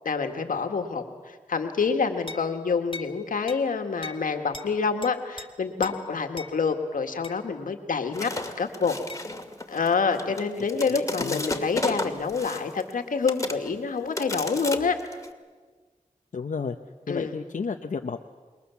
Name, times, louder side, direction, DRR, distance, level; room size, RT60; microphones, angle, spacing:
voice 1, 0.1-9.0 9.7-15.0 17.1-17.3, left 5 dB, 90° left, 5 dB, 2.0 m, -27 dB
sound 1, 2.3-2.5 2.9-3.1 3.5-3.6 4.0-4.2 4.5-4.7 5.0-5.5 5.8-6.0 6.4-6.5 7.2-7.4 9.1-9.3, left 3 dB, 40° left, 2.2 m, -39 dB
sound 2, 8.1-12.9 13.3-13.7 14.2-15.3, left 1 dB, 25° left, 2.5 m, -32 dB
voice 2, 10.7-11.4 16.3-16.8 17.1-18.3, left 5 dB, 70° left, 4 dB, 1.0 m, -32 dB
27.0 x 22.0 x 7.2 m, 1.4 s
cardioid pair, 55°, 14 cm